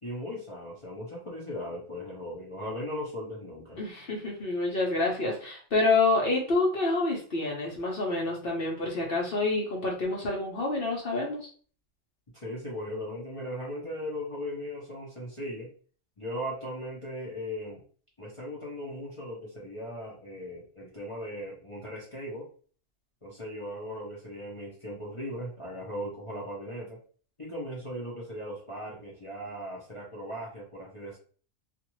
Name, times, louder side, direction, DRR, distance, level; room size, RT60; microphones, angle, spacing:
voice 1, 0.0-3.8 12.3-15.7 16.2-17.8 18.2-22.5 23.2-27.0 27.4-31.2, equal, 30° left, -5 dB, 0.7 m, -38 dB
voice 2, 3.8-11.4, left 3 dB, 50° left, -1 dB, 1.0 m, -27 dB
2.5 x 2.5 x 3.0 m, 0.43 s
omnidirectional pair, 1.4 m